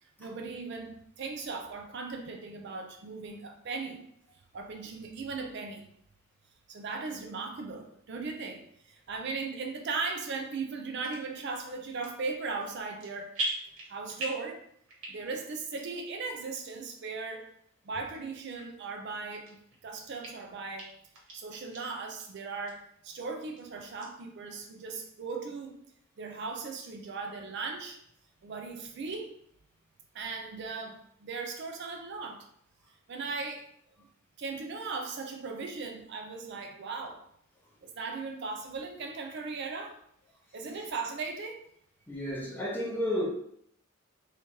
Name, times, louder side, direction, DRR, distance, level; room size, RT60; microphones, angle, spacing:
voice 1, 0.0-4.1 4.5-5.9 6.7-13.3 13.9-14.6 15.1-17.5 17.8-20.9 21.3-25.8 26.2-28.0 28.4-29.4 30.1-32.5 33.1-33.7 34.0-34.1 34.4-37.2 37.8-40.0 40.5-41.7, right 4 dB, 50° right, 0.4 m, -38 dB
sound 1, 11.0-11.2 11.8-12.3 12.6-13.1 13.3-14.5 14.9-15.4 15.8-15.9 16.5-16.6 17.3-17.4 18.1-18.2 18.6-18.7 19.1-19.8 20.2-20.3 20.8-20.9 21.1-21.8 22.2-22.3 22.6-22.7 23.1-23.6 24.0-24.1, right 1 dB, 85° right, 1.2 m, -38 dB
voice 2, 42.1-43.2, equal, 10° left, 0.7 m, -31 dB
3.0 x 2.4 x 4.2 m
head